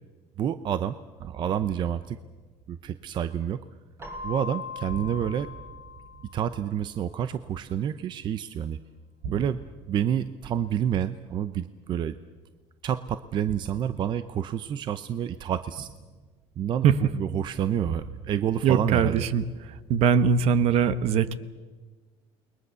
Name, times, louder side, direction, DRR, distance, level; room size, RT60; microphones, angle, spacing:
voice 1, 0.4-2.2 2.7-3.6 4.2-5.5 6.3-8.8 9.3-9.6 9.9-12.2 12.8-15.9 16.6-19.3, right 9 dB, 40° right, 12 dB, 0.7 m, -29 dB
sound 1, 2.3-3.8 4.1-4.6 4.9-8.6 9.0-12.6 13.5-17.0 17.8-19.4 19.7-20.2, right 5 dB, 85° right, 4.8 m, -45 dB
Keyboard (musical), 4.0-6.7, left 5 dB, 20° right, 3.4 m, -40 dB
voice 2, 18.6-19.4 19.9-21.3, right 7 dB, 55° right, 14 dB, 1.2 m, -21 dB
29.0 x 21.5 x 7.0 m, 1.4 s
cardioid pair, 145°, 12 cm